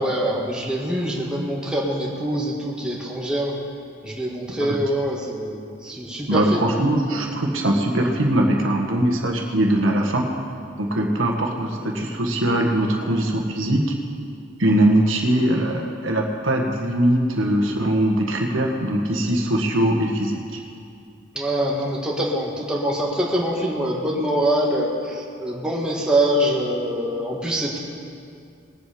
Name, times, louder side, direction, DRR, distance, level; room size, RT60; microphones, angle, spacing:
voice 1, 0.0-3.5 4.0-6.7 21.3-27.8, right 1 dB, 5° right, -4 dB, 1.6 m, -24 dB
voice 2, 6.3-10.3 10.8-13.9 14.6-20.6, right 1 dB, 85° right, 1 dB, 1.6 m, -21 dB
20.5 x 7.8 x 5.1 m, 2.4 s
head